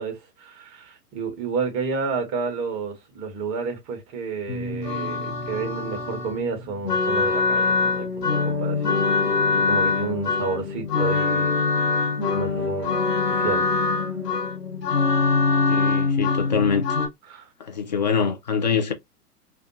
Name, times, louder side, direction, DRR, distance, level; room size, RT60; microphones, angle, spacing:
voice 1, 0.0-8.8 9.5-11.6 12.3-13.0 13.4-13.7 17.3-17.5, right 4 dB, 20° right, 0.7 m, -30 dB
sound 1, 4.5-17.1, left 4 dB, 85° left, 0.9 m, -23 dB
voice 2, 15.7-16.8 17.7-18.9, left 6 dB, 30° left, 0.4 m, -24 dB
2.4 x 2.2 x 2.6 m
figure-of-eight pair, 115°, 47 cm